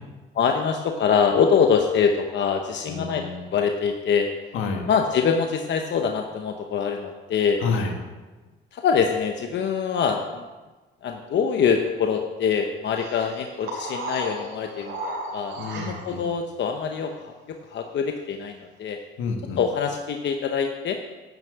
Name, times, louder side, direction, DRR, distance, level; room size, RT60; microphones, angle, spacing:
voice 1, 0.3-3.2 3.5-4.3 4.9-7.6 8.7-10.5 11.0-15.0 15.3-17.3 17.7-19.0 19.6-21.0, left 6 dB, 65° left, 4 dB, 0.9 m, -24 dB
voice 2, 2.9-3.5 4.5-4.8 7.6-7.9 15.6-16.2 19.2-19.6, left 4 dB, 90° left, 3 dB, 1.7 m, -29 dB
sound 1, 12.9-16.2, right 1 dB, 90° right, 3.3 m, -34 dB
10.5 x 6.2 x 8.0 m, 1.2 s
cardioid pair, 90°, 20 cm